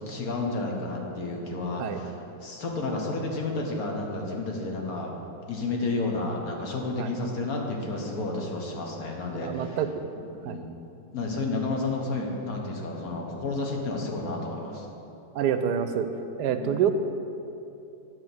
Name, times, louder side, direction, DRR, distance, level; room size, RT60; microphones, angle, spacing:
voice 1, 0.1-2.1 2.4-5.1 5.5-9.8 10.4-10.7 11.1-14.9 16.5-16.7, left 2 dB, 60° left, 0 dB, 1.6 m, -31 dB
voice 2, 9.4-9.9 10.4-10.6 15.3-16.1 16.4-16.9, right 9 dB, 75° right, 9 dB, 1.1 m, -26 dB
9.7 x 4.6 x 7.8 m, 2.8 s
omnidirectional pair, 1.8 m